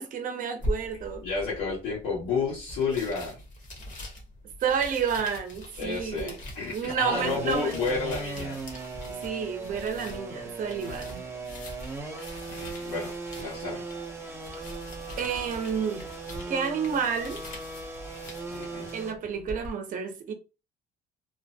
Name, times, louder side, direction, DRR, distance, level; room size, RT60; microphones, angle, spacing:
voice 1, 0.0-1.3 4.6-6.4 6.7-7.8 9.1-11.2 15.2-16.1 16.5-17.4 18.9-20.3, right 7 dB, 50° right, 0.7 m, -30 dB
sound 1, 0.6-19.7, left 1 dB, 50° left, 1.2 m, -42 dB
voice 2, 1.2-3.3 5.8-8.6 12.5-13.8 18.5-18.9, left 4 dB, 85° left, 1.6 m, -31 dB
sound 2, 7.1-19.1, right 3 dB, 15° right, 0.7 m, -38 dB
3.1 x 2.1 x 2.6 m
cardioid pair, 110°, 17 cm